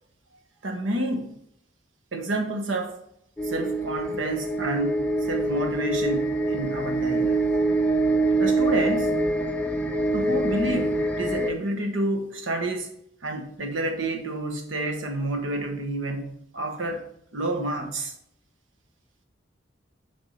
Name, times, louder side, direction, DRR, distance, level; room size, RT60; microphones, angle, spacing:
voice 1, 0.6-1.4 2.1-3.0 3.4-7.5 8.4-9.1 10.1-12.9 13.2-18.1, right 1 dB, 85° right, 1.1 m, -29 dB
sound 1, 3.4-11.5, right 2 dB, 5° left, 0.5 m, -25 dB
7.3 x 3.6 x 5.4 m
head